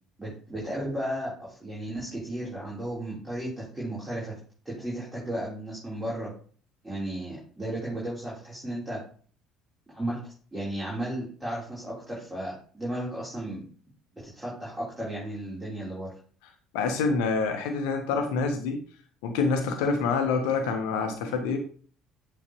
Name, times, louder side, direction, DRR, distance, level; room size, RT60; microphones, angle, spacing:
voice 1, 0.2-4.3 4.7-6.3 6.8-9.0 9.9-13.6 14.2-16.1, right 1 dB, 10° right, -8 dB, 3.6 m, -34 dB
voice 2, 16.7-18.8 19.2-21.6, left 4 dB, 65° left, 5 dB, 1.1 m, -26 dB
8.5 x 4.4 x 3.0 m, 0.43 s
figure-of-eight pair, 55°, 0 cm